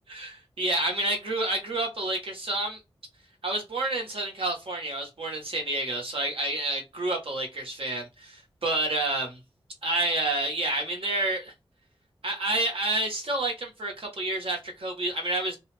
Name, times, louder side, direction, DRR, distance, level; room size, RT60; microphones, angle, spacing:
voice 1, 0.1-2.8 3.4-9.4 9.8-11.5 12.2-15.6, right 2 dB, 70° right, 1.1 m, -29 dB
2.3 x 2.3 x 3.2 m
wide cardioid pair, 75°, 10 cm